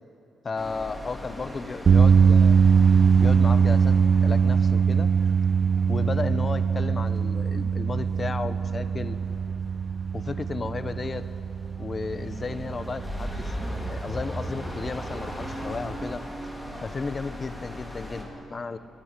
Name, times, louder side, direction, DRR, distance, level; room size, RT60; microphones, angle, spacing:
voice 1, 0.4-2.6 3.2-4.0 4.2-5.1 5.9-9.2 10.1-11.3 11.8-13.6 13.9-16.2 16.8-18.8, left 4 dB, 35° left, 12 dB, 0.9 m, -33 dB
sound 1, 0.5-18.2, equal, 10° left, 4.8 m, -39 dB
sound 2, 1.8-16.1, right 6 dB, 50° right, 0.6 m, -22 dB
25.5 x 20.5 x 8.2 m, 2.8 s
cardioid pair, 100°, 0 cm